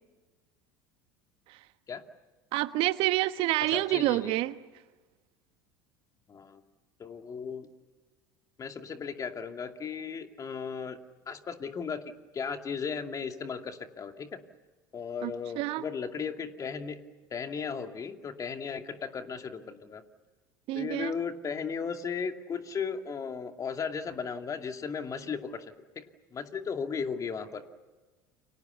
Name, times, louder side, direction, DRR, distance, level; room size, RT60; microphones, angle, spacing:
voice 1, 2.5-4.6 15.2-15.8 20.7-21.1, right 16 dB, 60° right, 12 dB, 1.2 m, -28 dB
voice 2, 3.6-4.3 6.3-6.6 7.0-7.7 8.6-12.0 12.3-14.4 14.9-17.0 17.3-20.0 20.7-26.0 26.3-27.6, left 6 dB, 35° left, 6 dB, 2.5 m, -36 dB
30.0 x 25.0 x 7.0 m, 1.3 s
hypercardioid pair, 80°, 10 cm